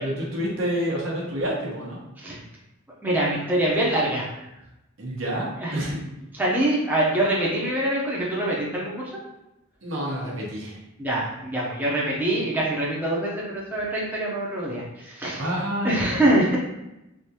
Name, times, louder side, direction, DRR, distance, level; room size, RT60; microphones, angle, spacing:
voice 1, 0.0-2.0 5.0-6.0 9.8-10.8 15.4-16.3, equal, 70° right, -3 dB, 0.9 m, -28 dB
voice 2, 3.0-4.4 5.6-5.8 6.3-9.1 11.0-15.4 15.8-16.6, right 1 dB, 10° right, -6 dB, 0.6 m, -24 dB
3.4 x 2.6 x 2.8 m, 0.91 s
head